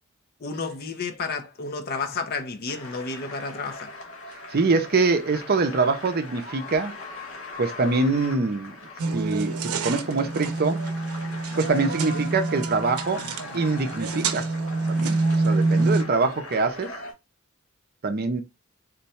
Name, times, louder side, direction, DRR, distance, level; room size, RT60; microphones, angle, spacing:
voice 1, 0.4-3.9, left 4 dB, 45° left, 0.5 m, -31 dB
sound 1, 2.7-17.1, left 2 dB, 75° left, 1.1 m, -40 dB
voice 2, 4.5-7.0 7.6-8.8 9.1-10.8 11.6-13.3 13.5-14.5 14.9-17.0 18.0-18.4, right 3 dB, 45° right, 0.5 m, -24 dB
sound 2, 9.0-16.0, right 3 dB, 90° right, 0.6 m, -26 dB
3.8 x 2.2 x 4.1 m
head